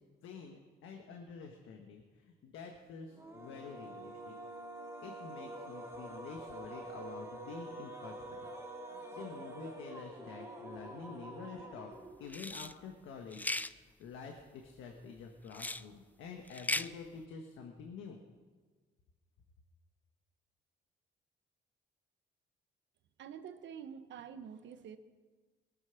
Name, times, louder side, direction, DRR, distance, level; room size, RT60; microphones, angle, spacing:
voice 1, 0.2-2.0 2.4-4.3 5.0-8.1 8.9-11.9 12.2-18.2, left 5 dB, 85° left, 3 dB, 1.4 m, -48 dB
sound 1, 3.1-12.5, right 1 dB, 15° right, 2.8 m, -47 dB
sound 2, 12.3-12.7 13.3-13.7 15.5-15.8 16.5-16.9, left 2 dB, 10° left, 0.4 m, -36 dB
voice 2, 23.2-25.0, right 7 dB, 70° right, 10 dB, 1.1 m, -47 dB
20.0 x 9.0 x 5.8 m, 1.4 s
cardioid pair, 90°, 20 cm